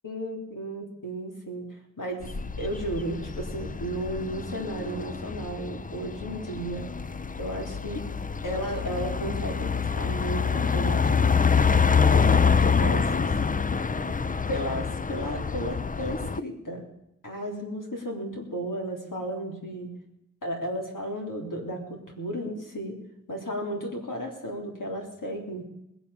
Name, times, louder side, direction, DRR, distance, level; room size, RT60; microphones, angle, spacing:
voice 1, 0.0-6.9 7.4-8.0 8.4-11.2 11.7-11.8 12.1-13.3 14.5-16.8 17.2-19.9 20.4-22.9 23.3-25.6, right 1 dB, 80° left, 0 dB, 3.5 m, -34 dB
sound 1, 2.2-16.4, left 6 dB, 25° left, 0.5 m, -26 dB
21.0 x 7.1 x 7.0 m, 0.81 s
wide cardioid pair, 45°, 31 cm